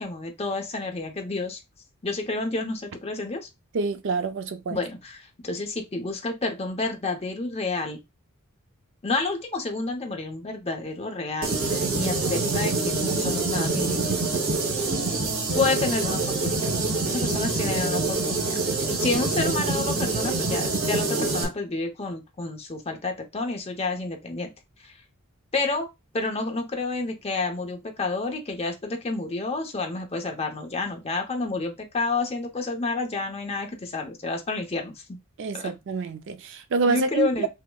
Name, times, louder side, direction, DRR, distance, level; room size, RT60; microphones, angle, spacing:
voice 1, 0.0-1.6 2.0-3.5 4.7-8.0 9.0-14.1 15.6-16.7 17.1-18.6 19.0-24.5 24.8-25.0 25.5-25.9 26.1-35.2 35.5-35.7 36.9-37.5, left 3 dB, 30° left, 0.7 m, -29 dB
voice 2, 3.7-4.8 35.4-37.5, right 4 dB, 60° right, 0.4 m, -27 dB
sound 1, 11.4-21.4, right 3 dB, 75° right, 1.3 m, -25 dB
5.6 x 2.0 x 2.3 m
head